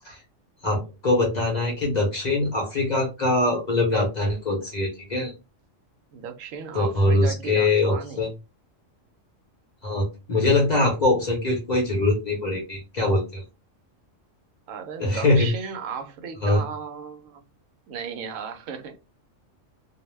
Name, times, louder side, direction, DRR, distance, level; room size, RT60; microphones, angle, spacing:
voice 1, 0.6-5.3 6.7-8.3 9.8-13.4 15.0-15.5 16.4-16.6, left 2 dB, 40° left, 0.7 m, -23 dB
voice 2, 6.1-8.3 14.7-17.4 17.9-19.0, right 6 dB, 80° right, 1.0 m, -35 dB
2.5 x 2.1 x 3.1 m
omnidirectional pair, 1.4 m